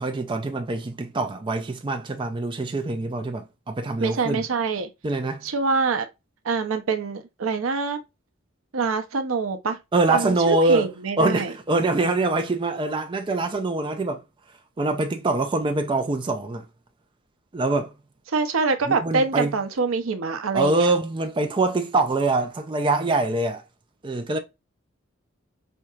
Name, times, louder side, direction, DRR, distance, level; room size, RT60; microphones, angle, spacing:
voice 1, 0.0-4.4 5.0-5.4 9.9-10.9 11.2-14.2 14.8-16.6 17.5-17.9 18.9-19.5 20.5-23.6 24.0-24.4, right 2 dB, 25° right, 0.4 m, -24 dB
voice 2, 4.0-4.9 5.4-6.1 6.4-8.0 8.7-9.8 10.1-11.5 18.3-20.9, right 4 dB, 75° right, 0.6 m, -25 dB
4.4 x 2.8 x 2.3 m
head